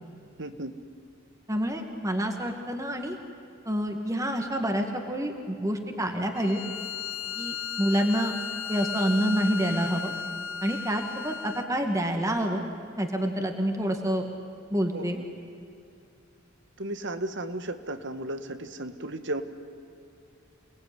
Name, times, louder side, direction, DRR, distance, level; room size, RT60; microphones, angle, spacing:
voice 1, 0.4-0.8 14.9-15.1 16.8-19.4, right 1 dB, 60° right, 9 dB, 1.7 m, -34 dB
voice 2, 1.5-3.2 3.7-6.6 7.4-8.3 8.7-10.1 10.6-12.6 13.0-14.3 14.7-15.2, equal, 15° right, 4 dB, 2.2 m, -27 dB
Bowed string instrument, 6.3-11.7, left 7 dB, 85° left, 1.4 m, -35 dB
29.0 x 19.5 x 9.8 m, 2.6 s
head